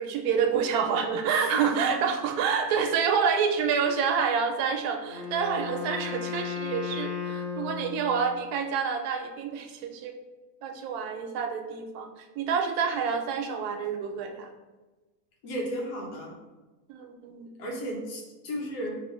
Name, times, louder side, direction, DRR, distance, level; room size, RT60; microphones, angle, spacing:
voice 1, 0.0-10.1 10.6-14.5 16.9-17.5, right 6 dB, 75° right, 3 dB, 1.1 m, -28 dB
voice 2, 1.3-2.0 15.4-16.3 17.6-19.0, equal, 90° left, -1 dB, 1.5 m, -34 dB
Wind instrument woodwind instrument, 5.0-8.3, left 6 dB, 75° left, 1.9 m, -35 dB
4.6 x 2.8 x 3.0 m, 1.2 s
omnidirectional pair, 1.7 m